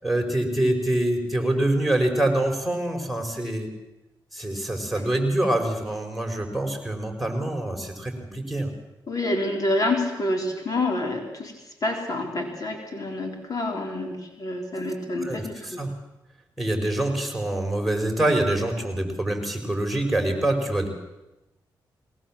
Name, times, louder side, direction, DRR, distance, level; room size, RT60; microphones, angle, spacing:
voice 1, 0.0-3.7 4.3-8.7 15.2-15.9 16.6-20.9, right 1 dB, ahead, 3 dB, 5.3 m, -25 dB
voice 2, 9.1-11.5 11.8-15.8, left 2 dB, 45° left, 2 dB, 3.9 m, -28 dB
21.0 x 19.0 x 7.5 m, 0.99 s
cardioid pair, 60°, 8 cm